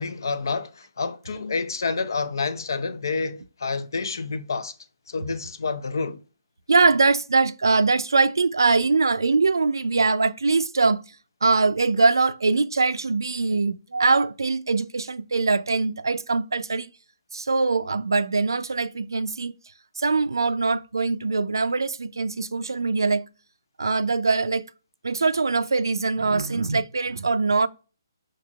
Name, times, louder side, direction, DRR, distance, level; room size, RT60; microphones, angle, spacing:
voice 1, 0.0-4.7 5.1-6.2, left 4 dB, 65° left, 0.5 m, -28 dB
voice 2, 6.7-11.1 11.4-16.9 17.3-19.5 20.0-23.2 23.8-24.6 25.0-27.7, right 4 dB, 75° right, 0.4 m, -22 dB
5.8 x 3.1 x 2.3 m
figure-of-eight pair, 140°, 2 cm